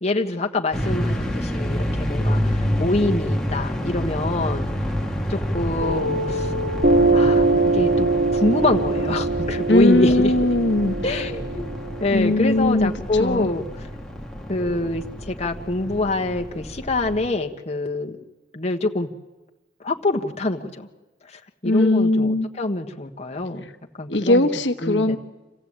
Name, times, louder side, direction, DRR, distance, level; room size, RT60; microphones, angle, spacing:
voice 1, 0.0-4.7 5.3-6.5 7.1-7.5 7.7-10.3 11.0-11.7 12.0-13.6 14.5-18.2 18.5-19.1 19.8-20.9 21.6-23.6 24.0-24.5 24.8-25.2, left 2 dB, 40° left, 3 dB, 1.3 m, -25 dB
sound 1, 0.7-17.3, equal, 5° left, 2.1 m, -28 dB
Piano, 5.8-12.9, right 2 dB, 60° right, 2.1 m, -23 dB
voice 2, 9.7-11.0 12.1-13.5 21.6-22.5 24.1-25.2, left 1 dB, 90° left, 7 dB, 1.3 m, -19 dB
27.0 x 16.0 x 8.8 m, 1.1 s
head